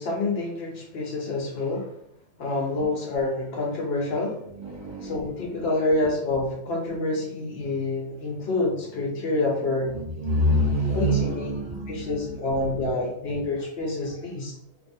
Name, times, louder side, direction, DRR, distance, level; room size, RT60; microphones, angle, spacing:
voice 1, 0.0-1.9 2.4-4.4 5.0-10.0 10.9-11.6 11.9-14.5, left 2 dB, 65° left, 0 dB, 0.7 m, -27 dB
voice 2, 4.6-5.3 9.9-12.2, equal, 75° right, -4 dB, 0.4 m, -26 dB
2.5 x 2.3 x 2.6 m, 0.74 s
omnidirectional pair, 1.4 m